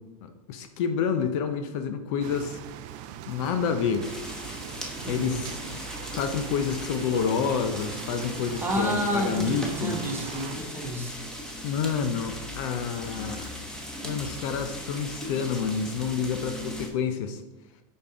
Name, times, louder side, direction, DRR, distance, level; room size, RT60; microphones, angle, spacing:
voice 1, 0.5-2.6 3.3-4.1 5.1-5.8 6.1-10.0 11.6-13.5 14.0-17.4, left 6 dB, 60° left, 8 dB, 0.7 m, -28 dB
sound 1, 2.2-10.6, right 11 dB, 45° right, 0.5 m, -41 dB
sound 2, 4.0-16.9, equal, 5° left, 1.1 m, -38 dB
voice 2, 5.0-5.4 8.4-11.2, equal, 10° right, 0 dB, 1.3 m, -30 dB
5.3 x 4.3 x 4.9 m, 1.0 s
hypercardioid pair, 120°, 18 cm